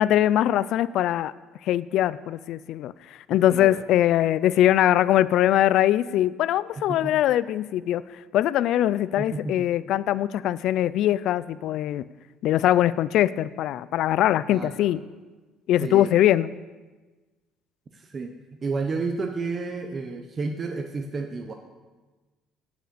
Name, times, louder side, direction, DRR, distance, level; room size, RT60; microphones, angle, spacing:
voice 1, 0.0-1.3 1.6-2.9 3.3-8.0 8.3-12.1 12.4-15.0 15.7-16.5, left 12 dB, 60° left, 18 dB, 0.3 m, -22 dB
voice 2, 3.5-3.8 6.8-7.1 9.2-9.7 14.5-14.9 15.8-16.1 17.9-18.3 18.6-21.5, right 4 dB, 25° right, 4 dB, 0.6 m, -31 dB
9.2 x 6.5 x 6.8 m, 1.3 s
cardioid pair, 155°, 0 cm